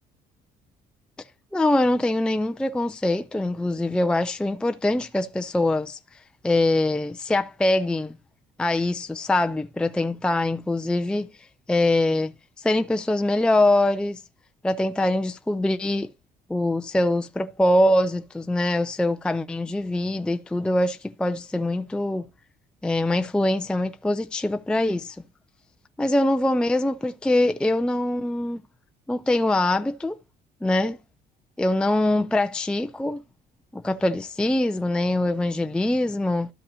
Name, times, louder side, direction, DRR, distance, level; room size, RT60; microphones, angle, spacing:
voice 1, 1.5-6.0 6.4-8.2 8.6-11.3 11.7-12.3 12.6-14.2 14.6-16.1 16.5-22.3 22.8-25.2 26.0-28.6 29.1-30.2 30.6-31.0 31.6-33.2 33.7-36.5, left 1 dB, 5° left, 0.4 m, -23 dB
13.0 x 5.3 x 2.7 m
cardioid pair, 110°, 17 cm